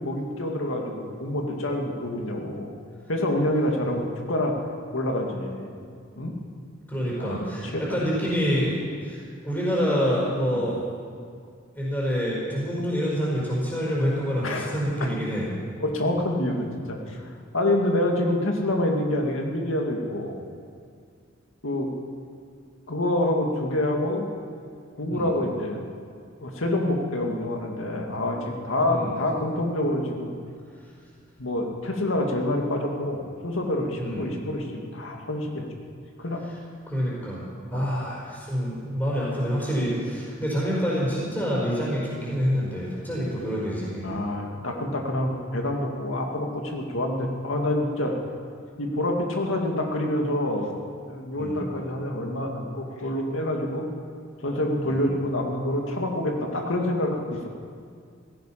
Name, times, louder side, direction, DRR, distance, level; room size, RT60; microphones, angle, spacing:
voice 1, 0.0-2.7 3.1-4.6 4.9-5.7 6.2-6.3 7.2-7.4 7.7-8.0 10.5-10.7 14.4-15.1 15.8-17.2 17.5-20.4 21.6-21.9 22.9-24.3 25.0-25.8 26.4-30.3 31.4-35.7 36.2-36.4 37.7-37.8 44.0-48.1 48.8-53.9 54.4-57.2, left 1 dB, 85° left, 1 dB, 2.2 m, -27 dB
voice 2, 6.9-8.7 9.0-10.8 11.7-15.5 25.1-25.3 28.9-29.1 34.0-34.3 36.9-44.2 51.3-51.6 54.8-55.0, equal, 10° left, -8 dB, 5.0 m, -27 dB
16.5 x 15.5 x 5.9 m, 2.2 s
head